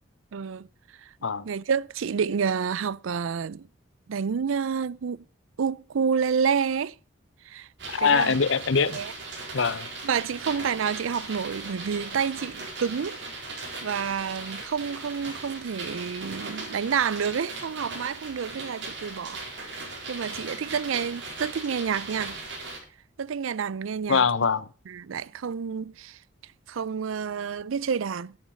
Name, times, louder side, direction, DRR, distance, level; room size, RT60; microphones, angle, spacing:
voice 1, 0.3-0.7 1.0-1.1 1.4-3.7 4.1-5.2 5.6-6.9 7.4-7.7 8.0-8.4 8.9-9.1 10.0-13.2 13.8-19.4 19.9-22.4 23.2-24.3 24.9-26.2 26.7-28.4, right 6 dB, 90° right, 0.4 m, -29 dB
sound 1, 7.8-22.8, right 3 dB, 60° right, 4.6 m, -38 dB
voice 2, 7.9-9.0 9.5-9.9 24.1-24.6, left 5 dB, 75° left, 0.7 m, -23 dB
11.0 x 8.4 x 5.4 m
head